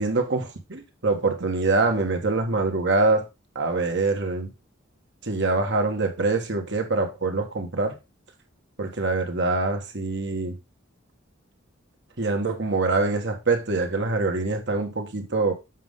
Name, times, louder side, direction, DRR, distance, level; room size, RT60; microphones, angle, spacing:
voice 1, 0.0-3.3 3.5-4.5 5.2-8.0 8.8-10.5 12.2-15.5, right 3 dB, 60° right, 1.6 m, -24 dB
7.4 x 5.5 x 3.7 m
head